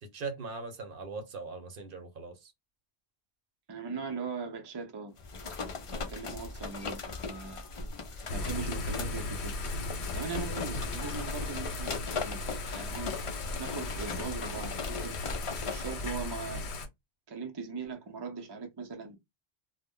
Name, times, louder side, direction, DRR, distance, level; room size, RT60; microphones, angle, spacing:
voice 1, 0.0-2.5, right 4 dB, 60° right, 0.8 m, -40 dB
voice 2, 3.7-5.1 5.9-7.6 8.3-9.6 10.1-12.4 12.7-13.2 13.6-15.4 15.6-16.7 17.3-19.2, right 4 dB, 35° right, 0.4 m, -40 dB
sound 1, 5.2-16.0, left 4 dB, 50° left, 0.4 m, -39 dB
Thunder / Rain, 8.3-16.9, left 2 dB, 80° left, 0.9 m, -37 dB
2.1 x 2.0 x 3.5 m
omnidirectional pair, 1.1 m